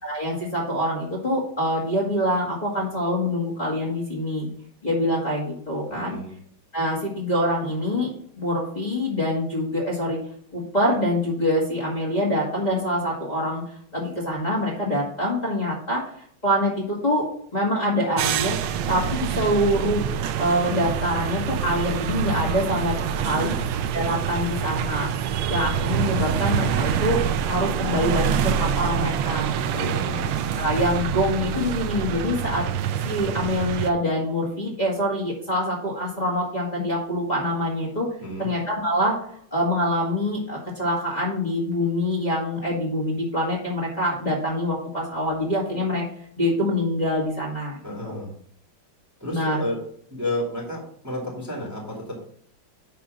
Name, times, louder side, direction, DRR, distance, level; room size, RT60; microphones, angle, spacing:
voice 1, 0.0-4.5 4.8-6.2 6.7-8.1 8.4-10.2 10.5-16.0 16.4-17.3 17.5-20.0 20.4-23.0 23.2-23.5 23.9-25.1 25.5-29.9 30.6-32.6 33.0-38.1 38.4-39.1 39.5-46.1 46.4-47.8 48.0-48.2 49.3-49.6, equal, 20° left, -6 dB, 2.1 m, -25 dB
voice 2, 5.9-6.3 23.2-23.7 29.7-30.3 38.2-38.5 47.8-48.3 49.2-49.8 50.1-52.2, left 1 dB, 10° right, -3 dB, 2.0 m, -32 dB
sound 1, 18.2-33.9, right 8 dB, 75° right, 1.3 m, -26 dB
10.0 x 3.4 x 6.3 m, 0.62 s
omnidirectional pair, 2.3 m